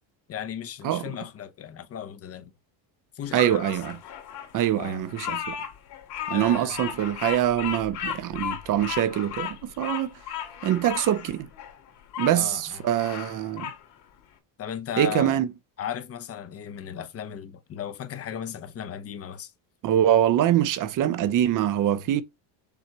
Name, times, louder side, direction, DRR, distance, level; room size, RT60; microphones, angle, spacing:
voice 1, 0.3-2.5 3.1-3.7 4.8-5.0 6.3-6.9 12.3-12.8 14.6-15.4 15.8-19.5, left 9 dB, 35° left, 0.8 m, -36 dB
voice 2, 3.3-4.0 4.5-5.6 6.3-10.1 10.6-11.5 12.2-13.7 15.0-15.5 19.8-22.2, right 11 dB, 45° right, 0.8 m, -24 dB
Bird vocalization bird call bird song, 3.4-12.4 12.8-13.8, left 9 dB, 60° left, 2.3 m, -35 dB
7.0 x 2.9 x 4.7 m
cardioid pair, 145°, 43 cm